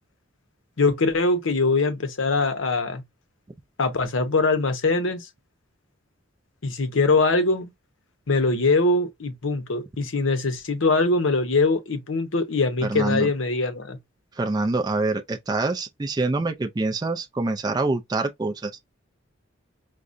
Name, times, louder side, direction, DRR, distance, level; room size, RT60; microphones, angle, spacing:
voice 1, 0.8-3.0 3.8-5.3 6.6-7.7 8.3-14.0, left 3 dB, 65° left, 0.7 m, -22 dB
voice 2, 12.8-13.3 14.4-18.7, right 3 dB, 20° right, 0.3 m, -25 dB
4.7 x 2.1 x 2.5 m
head